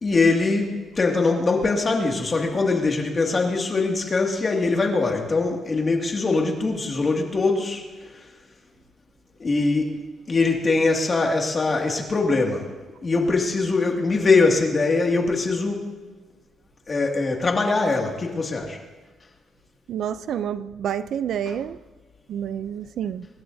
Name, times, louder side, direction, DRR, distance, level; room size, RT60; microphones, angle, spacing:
voice 1, 0.0-7.8 9.4-9.9 10.3-12.7 13.0-15.9 16.9-18.8, left 3 dB, 25° left, 2.2 m, -22 dB
voice 2, 19.9-21.8 22.3-23.3, right 9 dB, 55° right, 0.5 m, -28 dB
25.0 x 20.5 x 2.8 m
cardioid pair, 175°, 0 cm